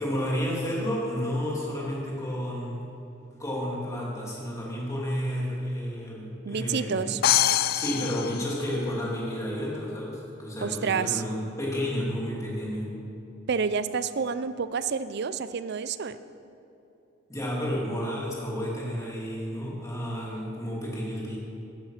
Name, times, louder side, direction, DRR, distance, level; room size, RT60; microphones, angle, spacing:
voice 1, 0.0-2.8 3.4-7.2 7.7-12.9 17.3-21.4, equal, 15° left, -4 dB, 3.0 m, -31 dB
voice 2, 6.4-7.2 10.6-11.2 13.5-16.2, right 6 dB, 60° right, 13 dB, 0.5 m, -29 dB
sound 1, 7.2-9.2, left 12 dB, 50° left, 0.3 m, -25 dB
13.0 x 9.8 x 5.8 m, 2.8 s
head